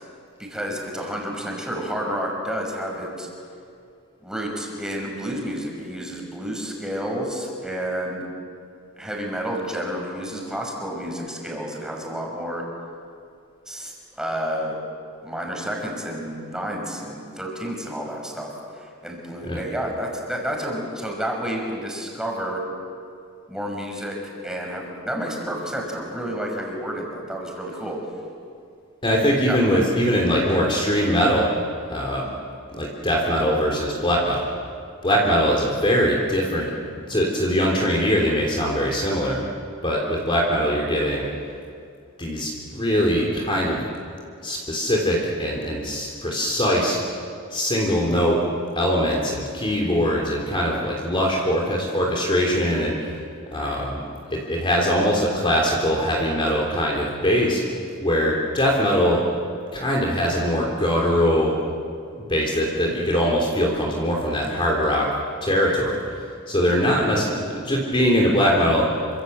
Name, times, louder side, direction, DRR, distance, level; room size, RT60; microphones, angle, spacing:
voice 1, 0.4-3.3 4.2-8.3 9.0-12.7 13.7-13.9 14.2-14.8 15.2-22.6 23.5-28.0 29.4-29.6 35.1-35.2, equal, 5° right, 0 dB, 5.7 m, -30 dB
voice 2, 29.0-31.5 31.9-32.3 32.7-34.4 35.0-39.4 39.8-41.3 42.2-43.8 44.4-47.0 47.5-48.4 48.8-53.2 53.5-54.0 54.3-57.6 58.0-59.2 59.7-61.6 62.3-65.1 65.4-66.0 66.5-68.9, equal, 25° left, -2 dB, 3.5 m, -22 dB
28.0 x 26.0 x 8.1 m, 2.3 s
head